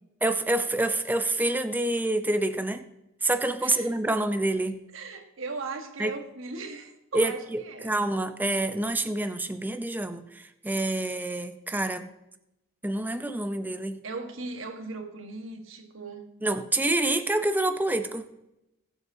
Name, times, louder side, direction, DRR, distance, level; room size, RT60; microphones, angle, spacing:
voice 1, 0.2-2.8 3.2-4.8 6.0-6.1 7.1-12.1 12.8-14.0 16.4-18.3, right 2 dB, 10° right, 0.6 m, -27 dB
voice 2, 3.6-4.3 4.9-8.0 14.0-16.3, right 3 dB, 75° right, 1.5 m, -38 dB
21.0 x 7.9 x 2.8 m
head